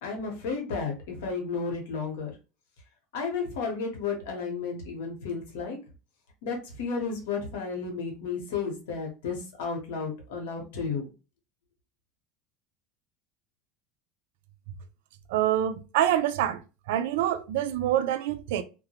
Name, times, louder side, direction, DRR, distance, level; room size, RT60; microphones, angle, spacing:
voice 1, 0.0-2.3 3.1-5.8 6.4-11.1, left 5 dB, 90° left, 0.9 m, -32 dB
voice 2, 15.3-16.6 16.9-18.6, right 11 dB, 85° right, 0.3 m, -26 dB
2.2 x 2.1 x 2.8 m
supercardioid pair, 150°, 0 cm